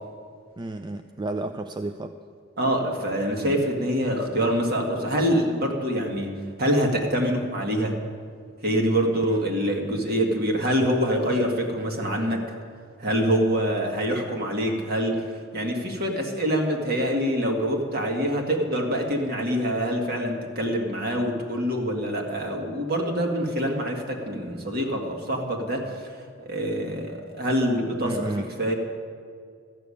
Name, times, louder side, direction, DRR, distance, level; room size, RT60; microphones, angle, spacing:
voice 1, 0.6-2.1 9.3-9.4 28.0-28.5, right 2 dB, 20° right, 8 dB, 0.4 m, -31 dB
voice 2, 2.6-8.0 8.6-12.4 13.0-15.2 15.5-26.1 26.4-28.7, equal, 50° right, 1 dB, 1.9 m, -25 dB
13.5 x 7.0 x 9.8 m, 2.2 s
head